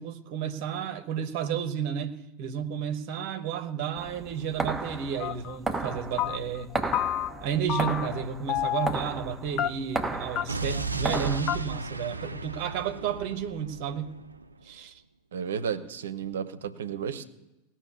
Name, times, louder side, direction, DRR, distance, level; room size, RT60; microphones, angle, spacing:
voice 1, 0.0-6.7 7.4-14.1 14.6-14.9, right 8 dB, 50° right, 1.2 m, -32 dB
sound 1, 4.0-11.4, right 3 dB, 10° right, 1.3 m, -34 dB
sound 2, 5.2-5.6 5.8-6.6 6.9-7.4 7.7-8.2 8.5-9.0 9.6-10.0 10.4-10.5 10.7-10.8 11.1-11.2 11.5-11.6, left 12 dB, 40° left, 0.5 m, -30 dB
Explosion, 10.5-14.5, right 3 dB, 85° right, 0.6 m, -35 dB
voice 2, 15.3-17.2, right 7 dB, 65° right, 1.0 m, -33 dB
18.5 x 6.3 x 9.5 m
figure-of-eight pair, 90°, 0 cm